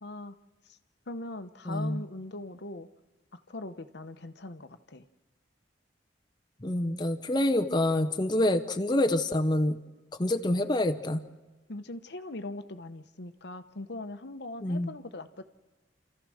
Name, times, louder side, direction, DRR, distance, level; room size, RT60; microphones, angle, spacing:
voice 1, 0.0-0.4 1.1-2.9 3.3-5.0 11.7-15.4, left 2 dB, 65° left, 9 dB, 1.0 m, -41 dB
voice 2, 1.7-2.0 6.6-9.8 10.2-11.2 14.6-14.9, left 1 dB, 25° left, 7 dB, 0.8 m, -27 dB
29.5 x 14.0 x 6.4 m, 1.3 s
head